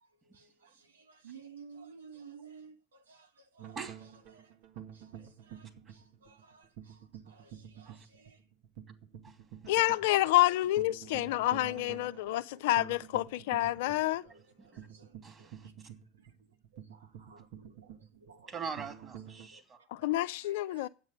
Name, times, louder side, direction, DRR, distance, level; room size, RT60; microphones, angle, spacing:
voice 1, 0.3-3.3 3.5-3.8 4.3-4.5 4.9-5.7 5.9-7.0 7.3-8.4 12.1-12.4 13.8-14.0 14.3-15.1 16.9-18.5 19.5-19.8 20.7-20.9, right 5 dB, 90° right, 1.1 m, -55 dB
sound 1, 3.6-19.5, right 9 dB, 65° right, 1.7 m, -50 dB
voice 2, 9.7-14.2 19.9-20.9, left 16 dB, 70° left, 0.5 m, -28 dB
voice 3, 15.2-15.7 18.5-19.8, right 5 dB, 30° right, 2.8 m, -42 dB
9.6 x 8.3 x 9.0 m
hypercardioid pair, 85°, 0 cm